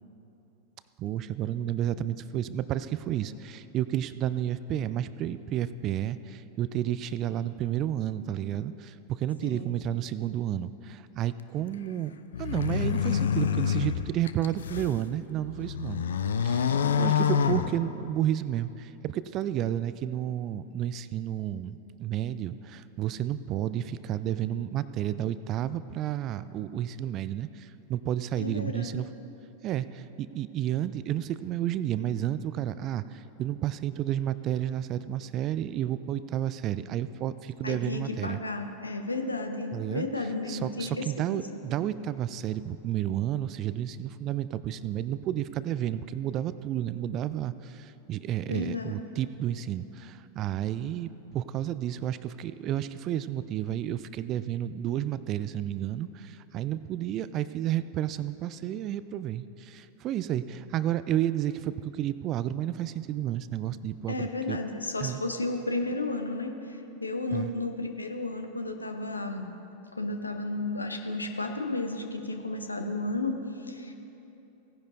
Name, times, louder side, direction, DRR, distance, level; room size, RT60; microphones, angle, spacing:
voice 1, 1.0-12.1 12.4-16.0 16.4-29.1 29.6-38.4 39.7-40.1 40.5-64.6 65.0-65.2 67.3-67.5, right 11 dB, 35° right, 15 dB, 0.3 m, -31 dB
sound 1, 12.3-15.0 15.5-18.3, left 8 dB, 65° left, 0.4 m, -27 dB
voice 2, 28.4-29.0 37.6-41.6 48.5-49.1 64.1-69.5 69.9-73.9, left 2 dB, 80° left, 6 dB, 0.8 m, -33 dB
17.0 x 10.0 x 2.7 m, 2.9 s
figure-of-eight pair, 90°, 0 cm